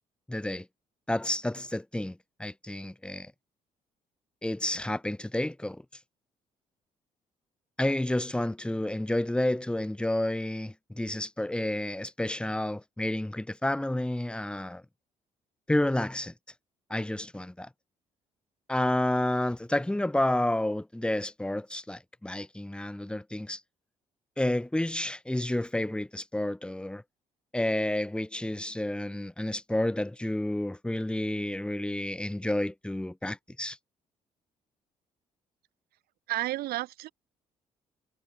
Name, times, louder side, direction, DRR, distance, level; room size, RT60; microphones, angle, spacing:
voice 1, 0.3-0.7 1.1-3.3 4.4-5.8 7.8-14.8 15.7-16.3 16.9-17.7 18.7-23.6 24.4-27.0 27.5-33.8, left 1 dB, 5° left, 0.7 m, -30 dB
voice 2, 36.3-37.1, right 16 dB, 75° right, 3.4 m, -31 dB
hypercardioid pair, 55°, 16 cm